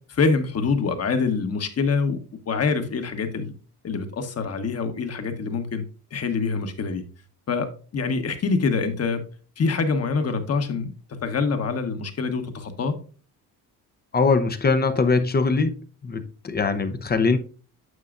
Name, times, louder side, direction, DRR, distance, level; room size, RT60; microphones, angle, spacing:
voice 1, 0.1-2.2 2.5-3.5 3.8-5.8 6.1-7.0 7.5-7.7 7.9-9.2 9.6-13.0, left 4 dB, 40° left, 1.3 m, -25 dB
voice 2, 14.1-15.7 16.0-17.4, left 4 dB, 25° left, 0.7 m, -21 dB
9.5 x 6.7 x 2.5 m
cardioid pair, 110°, 37 cm